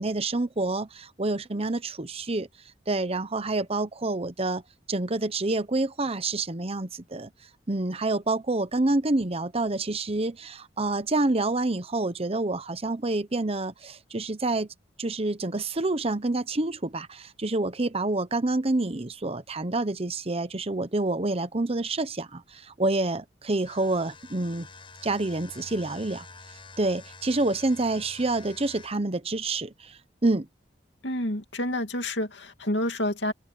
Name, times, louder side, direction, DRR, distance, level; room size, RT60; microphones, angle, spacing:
voice 1, 0.0-2.5 2.9-4.6 4.9-7.3 7.7-14.7 15.0-24.7 25.0-26.3 26.8-30.5, right 2 dB, 35° right, 1.0 m, -28 dB
sound 1, 23.6-29.1, left 3 dB, 30° left, 7.2 m, -48 dB
voice 2, 31.0-33.3, left 1 dB, 75° left, 2.6 m, -29 dB
open air
head